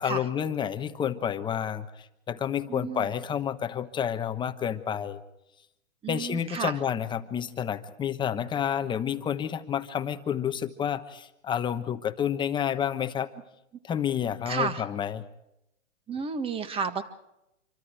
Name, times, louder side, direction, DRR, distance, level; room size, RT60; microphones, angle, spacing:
voice 1, 0.0-5.2 6.1-13.3 13.8-15.2, left 9 dB, 10° left, 9 dB, 1.1 m, -30 dB
voice 2, 2.7-3.1 6.0-6.7 14.5-14.8 16.1-17.0, right 5 dB, 15° right, 12 dB, 1.6 m, -31 dB
27.0 x 24.5 x 4.6 m, 0.86 s
hypercardioid pair, 135°, 39 cm